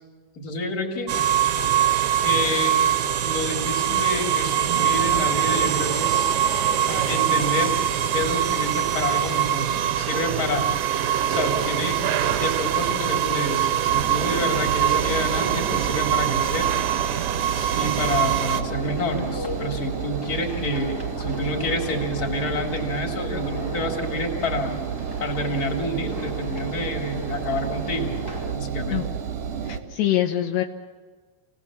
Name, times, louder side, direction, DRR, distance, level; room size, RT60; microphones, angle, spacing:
voice 1, 0.3-1.2 2.2-2.8 3.2-6.3 6.9-7.7 8.1-10.7 11.3-12.0 12.4-16.7 17.5-24.8 25.2-28.1 28.5-29.0, left 1 dB, 25° left, 2 dB, 3.1 m, -28 dB
sound 1, 1.1-18.6, right 10 dB, 70° right, 2.2 m, -23 dB
Engine, 13.9-29.8, right 7 dB, 50° right, 2.0 m, -31 dB
sound 2, 18.6-28.5, left 2 dB, 5° left, 2.3 m, -38 dB
voice 2, 29.6-30.6, left 13 dB, 75° left, 2 dB, 3.0 m, -24 dB
28.0 x 19.0 x 7.3 m, 1.4 s
omnidirectional pair, 5.2 m